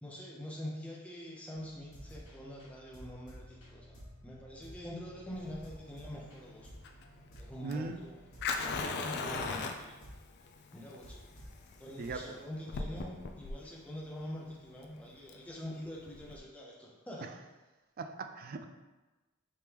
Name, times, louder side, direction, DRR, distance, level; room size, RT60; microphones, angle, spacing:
voice 1, 0.0-4.0 4.2-6.7 7.4-8.2 8.5-10.0 10.7-11.3 11.8-17.3, equal, 5° left, -4 dB, 0.7 m, -45 dB
sound 1, 1.5-11.6 12.0-12.5, equal, 70° left, 1.4 m, -53 dB
Fire, 5.3-16.4, left 4 dB, 50° left, 0.3 m, -40 dB
voice 2, 7.6-8.1 12.0-12.4 17.2-17.4 18.0-18.6, right 3 dB, 40° right, 6 dB, 0.3 m, -39 dB
5.0 x 3.3 x 3.0 m, 1.2 s
head